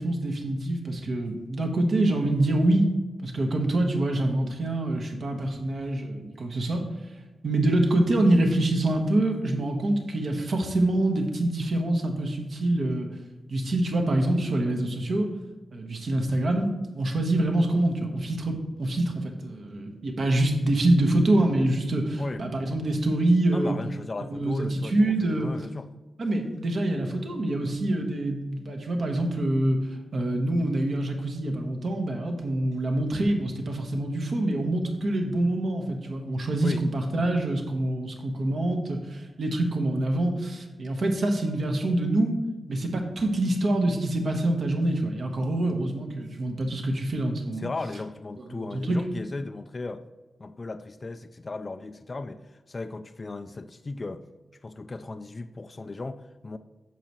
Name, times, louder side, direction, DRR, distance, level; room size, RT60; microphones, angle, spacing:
voice 1, 0.0-2.8 3.2-6.8 7.4-13.1 13.5-15.3 15.7-16.7 16.9-23.7 24.3-25.5 26.2-29.8 30.1-42.4 42.7-47.7 48.4-49.0, right 1 dB, 50° right, 3 dB, 1.1 m, -25 dB
voice 2, 22.2-22.5 23.5-25.9 36.6-36.9 47.6-50.0 50.4-54.2 54.6-56.6, left 3 dB, 25° left, 10 dB, 0.3 m, -36 dB
8.7 x 6.5 x 3.0 m, 1.2 s
wide cardioid pair, 170°, 0 cm